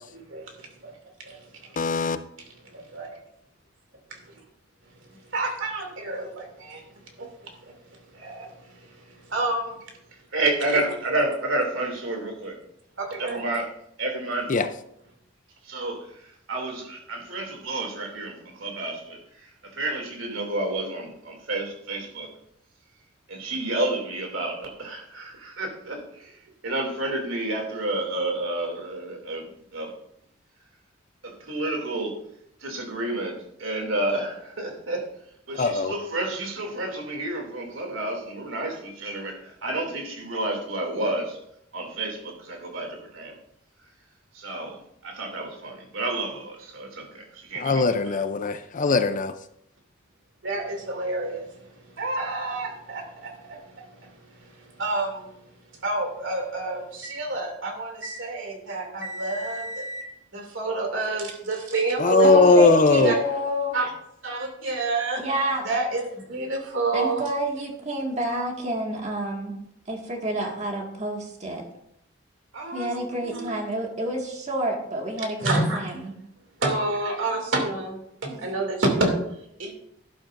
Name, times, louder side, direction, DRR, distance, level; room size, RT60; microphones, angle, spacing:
voice 1, 0.3-0.9 1.2-1.7 2.6-3.1 5.3-6.8 7.2-7.7 8.1-9.8 10.7-10.8 13.0-13.4 50.4-55.3 55.7-60.0 60.3-62.5 62.9-63.2 63.7-63.9 64.2-65.2 65.6-67.3 72.5-73.0 73.2-73.6 75.4-75.8 76.6-79.1 79.6-79.7, right 2 dB, 65° right, 2.7 m, -29 dB
voice 2, 1.8-2.2 14.5-14.7 35.6-35.9 47.6-49.3 62.0-63.2, left 3 dB, 40° left, 0.5 m, -19 dB
voice 3, 10.3-12.6 13.2-13.7 14.0-14.6 15.6-16.0 16.5-22.3 23.3-26.3 26.6-29.9 31.2-32.2 32.6-35.1 35.5-41.4 41.7-43.3 44.3-48.2, right 2 dB, 85° right, 2.7 m, -30 dB
voice 4, 62.2-63.8 65.2-65.7 66.9-69.6 69.9-71.6 72.7-76.1 78.3-78.5, right 1 dB, 35° right, 1.9 m, -29 dB
11.5 x 11.5 x 2.6 m
head